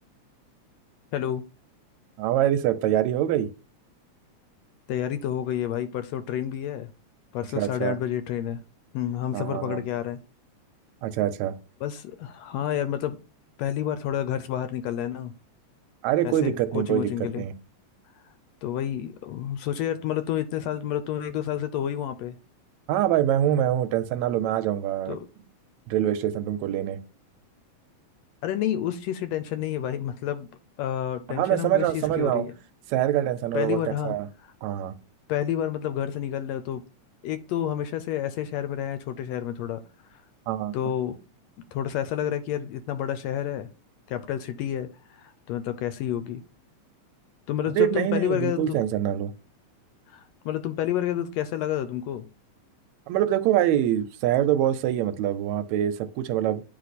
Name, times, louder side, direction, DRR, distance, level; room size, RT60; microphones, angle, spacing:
voice 1, 1.1-1.5 4.9-6.9 7.3-8.6 8.9-10.2 11.8-13.2 13.6-15.3 16.2-17.4 18.6-22.4 25.1-25.2 28.4-30.5 30.8-32.5 33.5-34.2 35.3-36.8 37.2-39.8 40.1-40.2 40.7-41.2 41.7-43.7 44.1-46.4 47.5-48.8 50.1-52.3, left 10 dB, 80° left, 1.6 m, -29 dB
voice 2, 2.2-3.5 7.6-8.0 9.3-9.8 11.0-11.5 16.0-17.1 17.4-17.5 22.9-25.2 25.9-27.0 31.3-32.5 32.9-33.8 34.0-34.3 34.6-34.9 40.5-40.7 47.8-49.3 53.1-56.6, right 11 dB, 80° right, 1.8 m, -24 dB
9.8 x 3.3 x 4.0 m
omnidirectional pair, 3.3 m